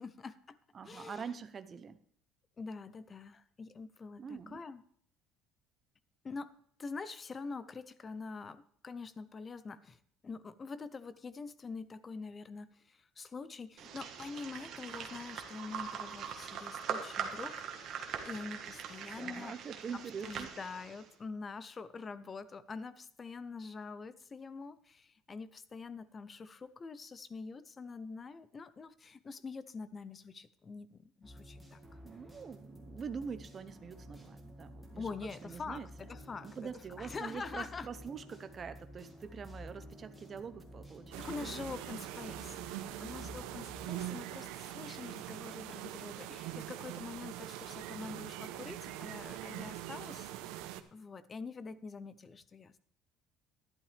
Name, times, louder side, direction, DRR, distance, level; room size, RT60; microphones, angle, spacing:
voice 1, 0.0-0.6 0.8-1.3 2.6-4.8 6.2-19.5 20.2-31.8 35.0-36.7 37.0-37.9 41.2-50.3 50.9-52.8, left 4 dB, 20° left, 15 dB, 0.5 m, -45 dB
voice 2, 0.7-2.0 4.2-4.6 19.2-20.5 32.0-35.1 35.4-35.9 36.4-41.5 42.9-43.4, right 6 dB, 25° right, 10 dB, 0.7 m, -45 dB
sound 1, 13.8-21.1, right 7 dB, 45° right, 1.4 m, -42 dB
sound 2, 31.2-43.9, equal, 5° left, 1.8 m, -52 dB
sound 3, 41.1-50.8, right 13 dB, 85° right, 0.8 m, -43 dB
12.0 x 11.0 x 3.4 m, 0.63 s
cardioid pair, 170°, 0 cm